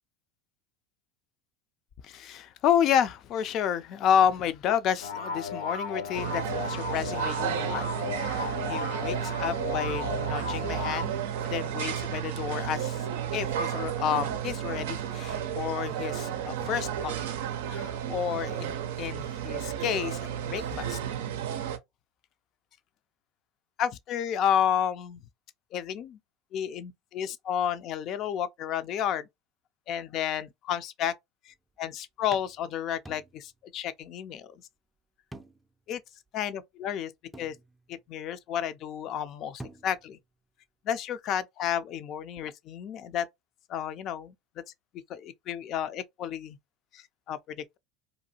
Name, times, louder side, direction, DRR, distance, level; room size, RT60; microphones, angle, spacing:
voice 1, 2.0-7.9 8.2-11.1 11.4-13.1 13.3-17.2 17.7-21.0 23.8-25.2 25.7-26.2 26.5-29.3 29.9-31.1 31.5-34.5 35.9-36.0 36.3-37.1 37.4-37.6 37.9-40.2 40.8-43.3 43.7-44.3 45.1-46.6 46.9-47.8, left 9 dB, 50° left, 0.4 m, -31 dB
sound 1, 5.0-11.1, left 4 dB, 85° left, 0.8 m, -35 dB
sound 2, 6.1-21.8, right 9 dB, 80° right, 0.4 m, -32 dB
sound 3, 31.5-31.8 32.3-33.7 34.0-34.1 35.3-35.8 36.3-36.4 37.3-38.1 39.3-39.4 39.6-40.2, right 1 dB, 10° right, 0.4 m, -48 dB
2.6 x 2.3 x 2.8 m
hypercardioid pair, 95°, 0 cm